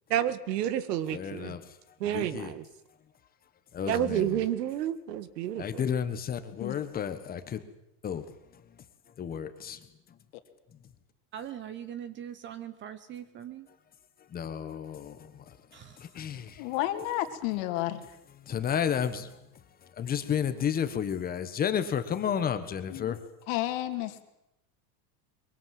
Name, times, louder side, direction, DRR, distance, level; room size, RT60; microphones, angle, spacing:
voice 1, 0.1-1.6 2.0-2.7 3.9-5.9, right 11 dB, 80° right, 2.0 m, -30 dB
voice 2, 1.1-1.6 2.1-2.5 3.7-4.4 5.6-7.6 8.0-8.2 9.2-9.8 14.3-15.3 16.0-16.6 18.5-19.3 20.0-23.2, left 8 dB, 20° left, 1.4 m, -31 dB
voice 3, 11.3-13.7 15.7-16.1, right 10 dB, 25° right, 1.0 m, -41 dB
voice 4, 16.6-18.0 22.9-23.1 23.5-24.2, left 14 dB, 50° left, 2.5 m, -31 dB
23.5 x 23.0 x 7.7 m
supercardioid pair, 160°, 48 cm